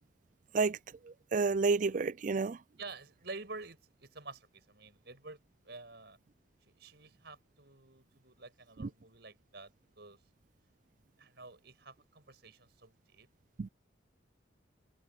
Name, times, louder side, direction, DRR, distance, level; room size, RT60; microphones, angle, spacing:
voice 1, 1.0-2.6 8.8-8.9 13.6-13.7, right 4 dB, 45° right, 0.4 m, -30 dB
voice 2, 2.8-6.2 6.7-10.2 11.2-13.3, right 3 dB, 60° right, 6.7 m, -49 dB
head